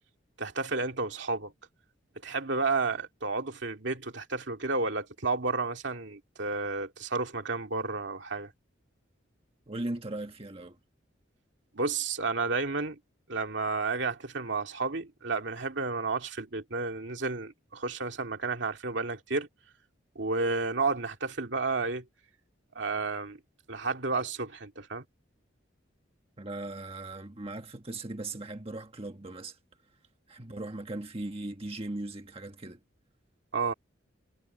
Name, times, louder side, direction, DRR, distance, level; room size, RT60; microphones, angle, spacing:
voice 1, 0.4-1.5 2.2-8.5 11.7-13.0 13.3-19.5 20.2-22.0 22.8-23.4 23.7-25.0 33.5-33.7, right 3 dB, 65° right, 2.3 m, -31 dB
voice 2, 9.7-10.8 26.4-29.6 30.3-32.8, right 2 dB, 30° right, 1.5 m, -38 dB
head